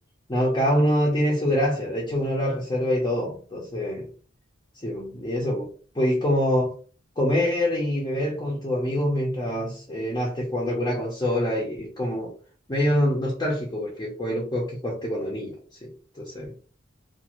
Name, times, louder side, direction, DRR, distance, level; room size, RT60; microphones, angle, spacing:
voice 1, 0.3-4.1 4.8-6.7 7.2-12.3 12.7-16.5, equal, 20° left, -3 dB, 0.7 m, -25 dB
2.6 x 2.5 x 3.0 m, 0.40 s
head